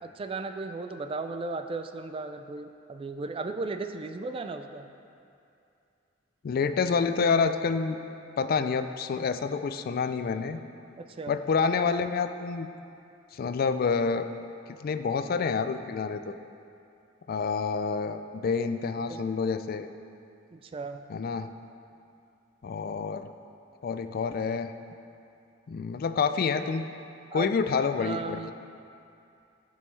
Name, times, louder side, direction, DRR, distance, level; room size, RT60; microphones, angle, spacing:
voice 1, 0.0-4.9 11.0-11.4 19.1-19.2 20.5-21.0 27.3-27.5 28.0-28.5, right 3 dB, 30° right, 7 dB, 0.3 m, -36 dB
voice 2, 6.4-8.0 8.4-10.6 11.3-12.7 13.3-14.3 14.8-16.3 17.3-19.9 21.1-21.5 22.6-23.3 23.8-24.7 25.7-26.9 27.3-28.5, left 5 dB, 50° left, 10 dB, 0.3 m, -28 dB
13.5 x 5.4 x 3.2 m, 2.6 s
head